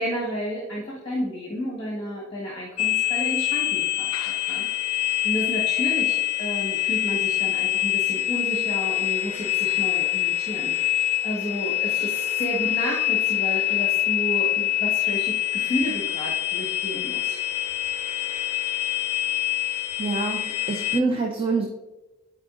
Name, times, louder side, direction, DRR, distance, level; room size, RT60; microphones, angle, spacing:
voice 1, 0.0-4.1 4.5-17.4 21.6-21.7, equal, 25° left, -4 dB, 1.5 m, -31 dB
sound 1, 2.8-21.0, left 14 dB, 85° left, 0.4 m, -25 dB
voice 2, 20.0-21.6, right 3 dB, 25° right, 1 dB, 0.6 m, -26 dB
11.5 x 4.8 x 2.5 m, 1.1 s
head